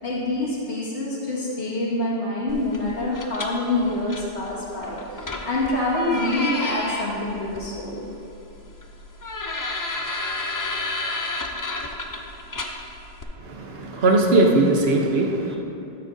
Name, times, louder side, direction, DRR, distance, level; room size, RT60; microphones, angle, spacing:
voice 1, 0.0-8.1, left 2 dB, 75° left, -7 dB, 2.1 m, -26 dB
sound 1, 2.5-13.2, left 2 dB, 30° left, 0.4 m, -32 dB
voice 2, 13.4-15.6, right 2 dB, 65° right, 1 dB, 1.2 m, -19 dB
12.5 x 8.0 x 2.7 m, 2.7 s
omnidirectional pair, 1.1 m